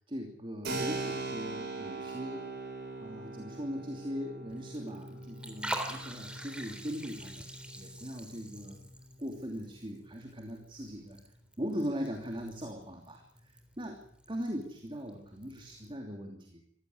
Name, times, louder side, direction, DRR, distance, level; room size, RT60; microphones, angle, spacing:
voice 1, 0.0-2.4 3.0-7.5 7.8-8.8 9.2-11.2 11.6-14.0 14.3-16.6, equal, 25° right, 3 dB, 3.0 m, -40 dB
Keyboard (musical), 0.6-9.0, right 2 dB, 55° right, 6.7 m, -41 dB
Liquid, 4.5-15.9, right 1 dB, 5° right, 3.4 m, -46 dB
25.0 x 16.0 x 9.6 m, 0.68 s
head